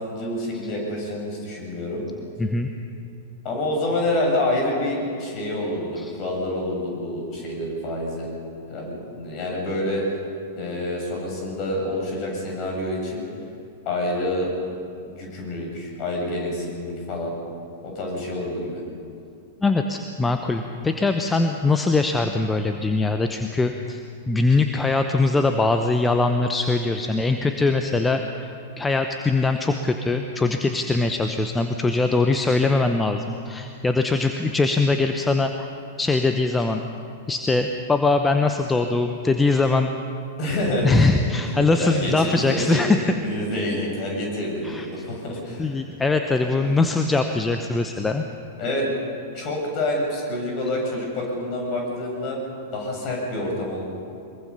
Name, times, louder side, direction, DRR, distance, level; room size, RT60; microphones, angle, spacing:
voice 1, 0.0-2.0 3.4-8.4 8.7-10.0 10.5-13.2 13.9-14.5 15.0-17.3 17.8-18.8 40.4-42.8 43.2-45.8 46.5-46.7 48.6-48.9 49.3-52.4 52.7-53.8, left 1 dB, 35° left, -1 dB, 7.4 m, -27 dB
voice 2, 2.4-2.7 6.0-6.1 19.6-24.0 24.3-28.5 28.8-35.7 36.0-36.8 37.3-39.9 40.8-43.0 44.6-44.9 45.6-48.2, left 3 dB, 10° left, 6 dB, 1.0 m, -22 dB
23.0 x 22.5 x 5.6 m, 2.5 s
figure-of-eight pair, 95°, 0 cm